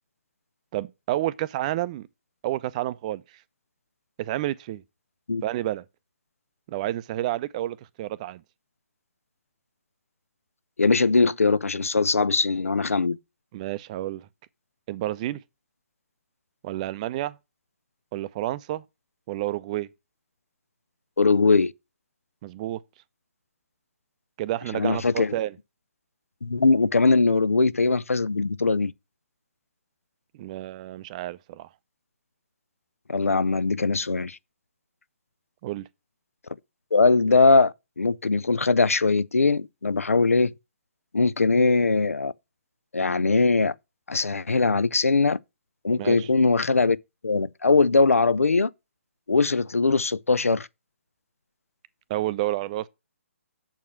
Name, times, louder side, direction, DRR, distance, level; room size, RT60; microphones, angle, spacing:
voice 1, 0.7-2.1 2.4-3.2 4.2-4.8 5.4-5.8 6.7-8.4 13.5-14.3 14.9-15.4 16.6-17.4 18.1-18.8 19.3-19.9 22.4-22.8 24.4-25.6 30.4-31.7 35.6-35.9 46.0-46.3 52.1-52.9, right 15 dB, 30° right, 0.5 m, -30 dB
voice 2, 10.8-13.2 21.2-21.7 24.7-25.3 26.4-28.9 33.1-34.4 36.9-40.5 41.1-42.3 42.9-43.7 44.1-45.4 45.8-47.0 47.2-48.7 49.3-50.7, left 3 dB, 85° left, 0.5 m, -21 dB
7.3 x 4.8 x 7.1 m
figure-of-eight pair, 140°, 7 cm